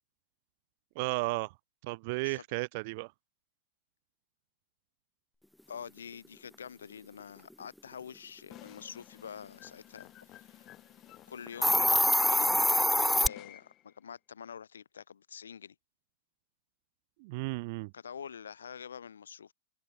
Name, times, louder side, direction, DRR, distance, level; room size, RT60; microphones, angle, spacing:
voice 1, 0.9-1.5 1.8-3.1 17.2-17.9, right 26 dB, 50° right, 0.9 m, -34 dB
voice 2, 5.7-10.7 11.3-12.5 12.8-15.7 17.9-19.5, left 7 dB, 70° left, 2.9 m, -46 dB
sound 1, 8.5-13.9, left 15 dB, 35° left, 6.0 m, -51 dB
Hiss, 11.5-13.3, left 1 dB, ahead, 0.6 m, -24 dB
open air
figure-of-eight pair, 90°, 0 cm